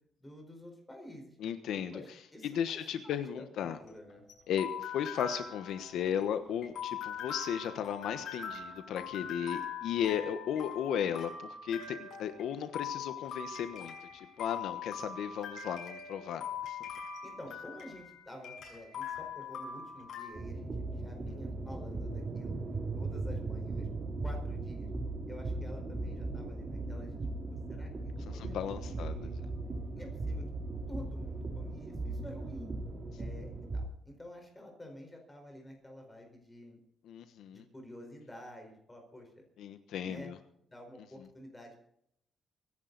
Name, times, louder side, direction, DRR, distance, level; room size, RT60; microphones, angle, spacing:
voice 1, 0.2-1.4 1.7-4.2 17.2-22.6 23.0-23.9 24.2-24.9 25.3-27.2 27.4-28.6 28.8-29.3 29.9-30.5 30.9-32.7 33.2-36.8 37.5-39.3 40.0-40.3 40.7-41.8, left 1 dB, 10° left, 3 dB, 4.7 m, -50 dB
voice 2, 1.4-2.0 2.4-3.8 4.5-16.8 28.2-29.3 37.1-37.6 39.6-40.3, left 9 dB, 70° left, 9 dB, 1.2 m, -35 dB
sound 1, 3.6-20.3, left 7 dB, 55° left, 5.9 m, -42 dB
sound 2, 20.3-33.8, right 2 dB, 25° right, 2.6 m, -38 dB
24.0 x 11.0 x 4.1 m, 0.70 s
cardioid pair, 175°, 0 cm